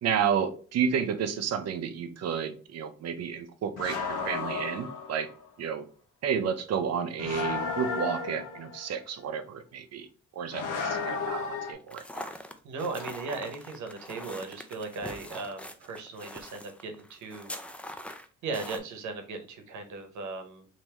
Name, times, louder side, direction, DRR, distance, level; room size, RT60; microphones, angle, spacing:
voice 1, 0.0-5.3 5.6-5.9 6.2-10.1 10.4-12.3, right 7 dB, 55° right, 9 dB, 0.6 m, -31 dB
sound 1, 3.8-5.4 7.2-8.8 10.5-11.7, left 5 dB, 90° left, 0.8 m, -33 dB
sound 2, 11.9-18.8, left 1 dB, 5° left, 0.4 m, -43 dB
voice 2, 12.6-17.5 18.4-20.7, right 3 dB, 75° right, 5 dB, 0.9 m, -37 dB
3.4 x 2.7 x 2.9 m, 0.40 s
cardioid pair, 90°, 30 cm